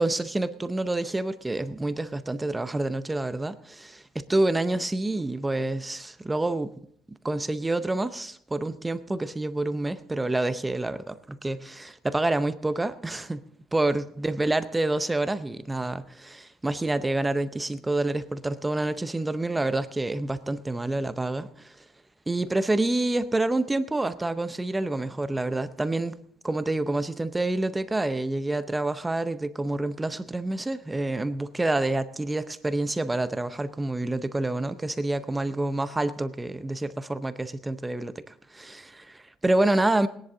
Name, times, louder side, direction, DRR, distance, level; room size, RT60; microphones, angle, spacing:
voice 1, 0.0-6.7 7.2-13.4 13.7-21.7 22.3-26.2 26.4-40.1, right 2 dB, 10° right, 12 dB, 0.6 m, -28 dB
19.0 x 10.5 x 3.8 m, 0.66 s
cardioid pair, 135°, 0 cm